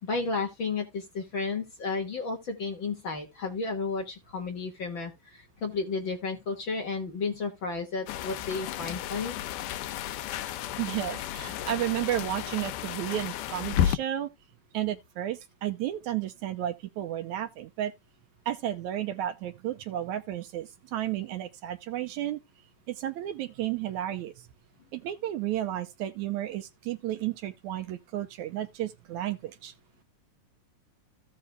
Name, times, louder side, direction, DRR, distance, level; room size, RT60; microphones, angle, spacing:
voice 1, 0.0-9.4, left 4 dB, 45° left, 1.9 m, -32 dB
sound 1, 8.1-14.0, left 11 dB, 90° left, 2.2 m, -32 dB
voice 2, 10.8-14.3 14.7-17.9 18.5-22.4 22.9-24.5 24.9-29.7, right 12 dB, 75° right, 2.0 m, -32 dB
15.5 x 5.3 x 2.3 m
omnidirectional pair, 3.7 m